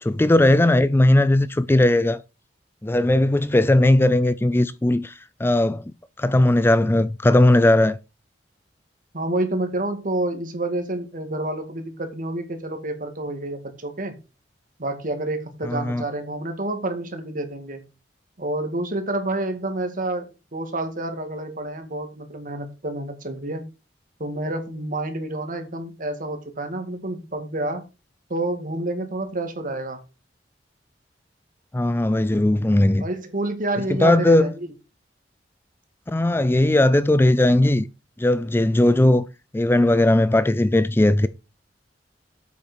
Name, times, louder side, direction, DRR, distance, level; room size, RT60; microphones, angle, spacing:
voice 1, 0.0-2.2 2.8-5.8 6.2-8.0 15.6-16.0 31.7-33.0 33.9-34.5 36.1-37.9 38.2-39.2 39.5-41.3, left 1 dB, 15° left, 0.4 m, -18 dB
voice 2, 9.1-14.2 14.8-17.8 18.4-23.6 24.2-27.8 28.3-30.0 33.0-34.7, right 2 dB, 50° right, 2.2 m, -28 dB
8.2 x 5.9 x 6.1 m
head